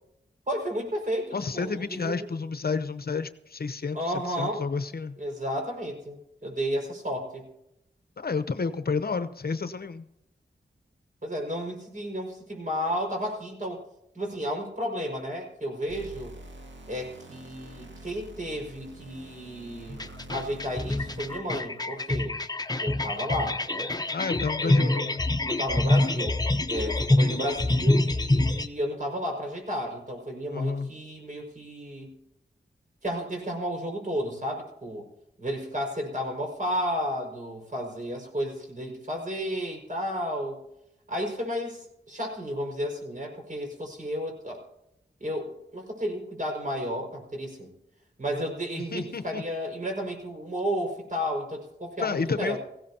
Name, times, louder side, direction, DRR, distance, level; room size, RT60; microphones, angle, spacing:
voice 1, 0.5-2.3 3.9-4.7 5.2-7.5 11.2-13.8 14.1-16.3 16.9-22.4 22.8-23.9 24.6-25.0 25.4-26.4 26.7-32.1 33.0-35.1 35.4-40.6 41.1-44.6 45.2-47.7 48.2-52.6, equal, 45° right, 2 dB, 5.5 m, -32 dB
voice 2, 1.3-5.1 8.2-10.0 24.1-25.2 30.5-30.9 48.9-49.4 52.0-52.6, left 4 dB, 55° left, 11 dB, 0.8 m, -30 dB
sound 1, 15.9-21.6, right 1 dB, 75° right, 2.2 m, -46 dB
sound 2, 19.9-28.7, left 2 dB, 20° left, 1.0 m, -26 dB
17.0 x 16.5 x 2.9 m, 0.81 s
cardioid pair, 45°, 19 cm